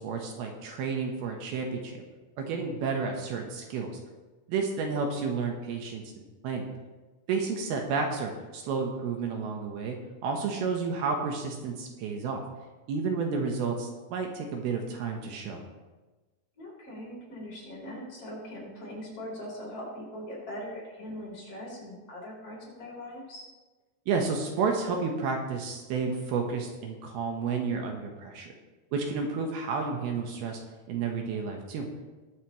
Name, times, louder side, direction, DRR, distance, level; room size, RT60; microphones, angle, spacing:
voice 1, 0.0-2.0 2.4-3.9 4.5-6.7 7.3-10.0 10.2-12.4 12.9-15.6 24.1-28.5 28.9-30.6 30.9-31.9, right 5 dB, 75° right, 2 dB, 2.9 m, -31 dB
voice 2, 16.6-23.4, equal, 35° left, -4 dB, 4.1 m, -41 dB
20.5 x 8.2 x 3.1 m, 1.2 s
omnidirectional pair, 4.7 m